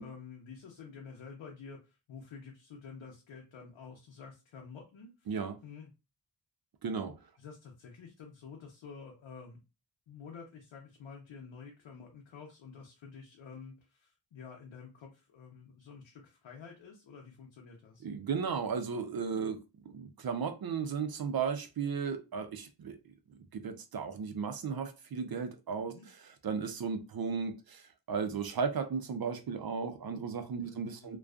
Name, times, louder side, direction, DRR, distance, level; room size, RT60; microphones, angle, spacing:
voice 1, 0.0-5.3 5.6-5.9 7.4-9.6 10.1-18.0 25.9-26.1 30.6-31.2, left 5 dB, 85° left, 0.7 m, -50 dB
voice 2, 5.3-5.6 6.8-7.1 18.0-19.6 19.9-23.0 23.3-25.9 26.4-31.2, right 6 dB, 50° right, 0.6 m, -35 dB
2.4 x 2.3 x 2.3 m
cardioid pair, 50°, 46 cm